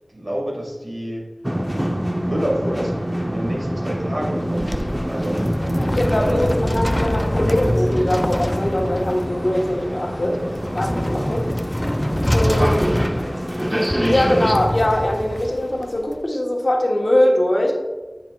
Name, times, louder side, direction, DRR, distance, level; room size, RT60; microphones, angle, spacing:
voice 1, 0.1-1.2 2.3-5.5 6.1-6.8 10.8-11.4, equal, 60° right, -2 dB, 2.1 m, -28 dB
sound 1, 1.4-14.6, equal, 15° right, 0.9 m, -26 dB
sound 2, 4.3-16.2, left 1 dB, 15° left, 0.4 m, -25 dB
voice 2, 5.9-11.4 12.3-12.9 14.1-17.7, left 1 dB, 60° left, 0 dB, 1.2 m, -21 dB
10.0 x 6.0 x 2.3 m, 1.3 s
wide cardioid pair, 40°, 0 cm